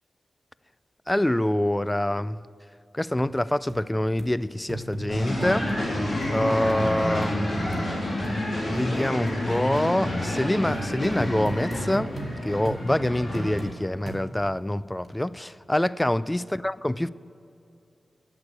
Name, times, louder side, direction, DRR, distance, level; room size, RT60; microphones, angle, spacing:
voice 1, 1.1-2.4 2.9-5.7 6.3-7.9 8.6-12.1 12.4-17.1, left 1 dB, 15° left, 0.3 m, -26 dB
sound 1, 3.2-3.3 3.7-3.8 4.2-4.3 4.7-5.8 6.2-6.4 6.7-6.8 7.2-7.3 7.7-7.9 8.2-8.4 8.7-8.9 9.3-9.4 9.7-9.9 10.3-10.4 10.7-12.3 12.6-12.8 13.3-13.7 14.1-14.5 15.0-15.1, right 2 dB, 40° right, 2.2 m, -38 dB
sound 2, 5.1-13.7, left 1 dB, 60° left, 3.6 m, -29 dB
10.5 x 8.5 x 8.6 m
cardioid pair, 65°, 0 cm